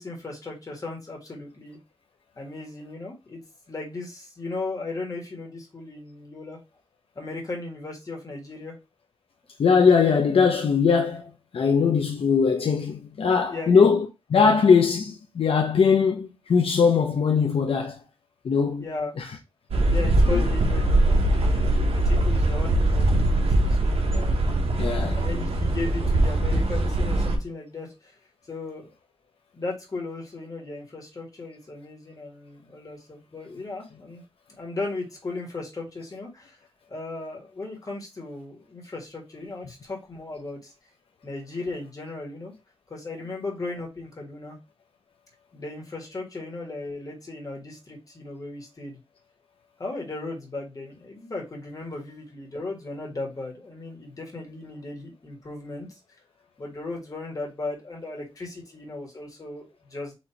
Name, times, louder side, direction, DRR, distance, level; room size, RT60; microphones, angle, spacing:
voice 1, 0.0-1.8 2.4-3.4 3.7-6.6 7.1-8.8 13.5-13.9 18.8-19.1 19.9-24.5 25.1-28.2 28.5-28.9 29.5-34.2 34.6-36.6 36.9-40.7 41.2-42.5 42.9-44.6 45.5-49.0 49.8-55.9 56.6-60.1, left 2 dB, 35° left, 1.6 m, -36 dB
voice 2, 9.6-18.0 18.4-18.9 19.2-19.3 20.3-20.4 24.8-25.2, left 5 dB, 75° left, 0.6 m, -21 dB
sound 1, 19.7-27.4, right 1 dB, 90° right, 0.9 m, -22 dB
4.2 x 2.8 x 4.3 m
wide cardioid pair, 135°, 10 cm